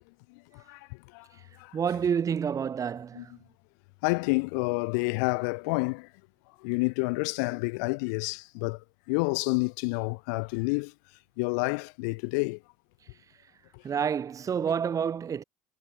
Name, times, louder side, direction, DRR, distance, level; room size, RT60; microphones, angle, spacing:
voice 1, 0.5-0.9 1.1-1.3 1.6-1.8 3.2-3.3 4.0-6.1 6.6-8.8 9.1-10.9 11.4-12.6, left 31 dB, 75° left, 4.0 m, -29 dB
voice 2, 1.7-3.3 13.8-15.4, right 7 dB, 35° right, 6.2 m, -28 dB
hypercardioid pair, 85°, 10 cm